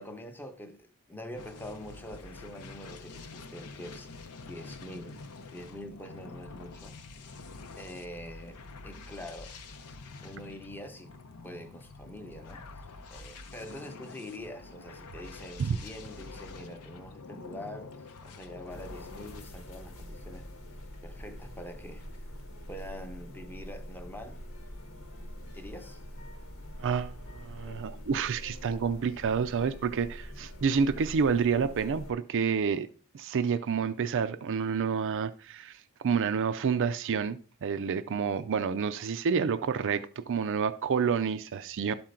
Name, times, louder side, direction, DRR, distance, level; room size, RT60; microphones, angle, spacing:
voice 1, 0.0-5.2 5.5-7.0 7.8-9.5 10.2-11.1 11.4-12.8 13.1-20.5 21.0-22.3 22.7-24.4 25.5-26.0, left 1 dB, 10° left, 0.8 m, -45 dB
sound 1, 1.3-19.4, left 3 dB, 85° left, 0.7 m, -46 dB
sound 2, 18.7-32.1, equal, 65° left, 1.1 m, -45 dB
voice 2, 26.8-32.9 33.1-41.9, right 6 dB, 60° right, 0.4 m, -29 dB
11.5 x 4.4 x 3.7 m
head